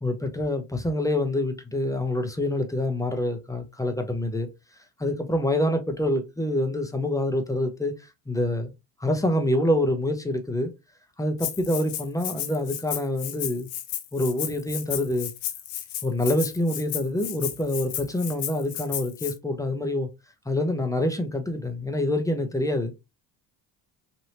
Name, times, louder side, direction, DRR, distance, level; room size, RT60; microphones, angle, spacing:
voice 1, 0.0-4.5 5.0-8.7 9.0-10.7 11.2-13.7 14.1-15.3 16.0-20.1 20.5-22.9, left 1 dB, 5° left, 0.8 m, -26 dB
Rattle (instrument), 11.4-19.3, left 12 dB, 75° left, 0.7 m, -33 dB
3.2 x 2.6 x 2.9 m
hypercardioid pair, 65°, 49 cm